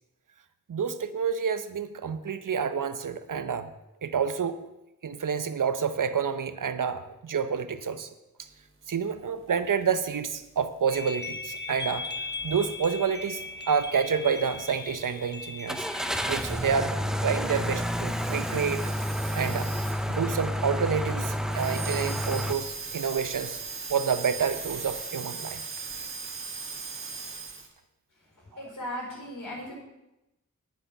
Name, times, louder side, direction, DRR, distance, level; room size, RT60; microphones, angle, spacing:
voice 1, 0.7-3.7 4.0-4.6 5.0-8.1 8.9-15.9 16.3-16.9 17.2-18.8 19.3-19.7 20.1-23.6 23.9-25.6 28.5-28.6, right 6 dB, 75° right, 11 dB, 0.8 m, -29 dB
sound 1, 10.1-20.3 20.7-20.8 21.0-27.7, right 5 dB, 40° right, 1.6 m, -40 dB
sound 2, 10.9-16.5, left 3 dB, 30° left, 1.1 m, -38 dB
sound 3, 12.4-12.6 13.1-13.2 15.7-22.5, equal, ahead, 0.6 m, -30 dB
voice 2, 28.5-29.7, left 1 dB, 80° left, -3 dB, 5.1 m, -37 dB
9.8 x 9.2 x 5.6 m, 0.94 s
wide cardioid pair, 90°, 32 cm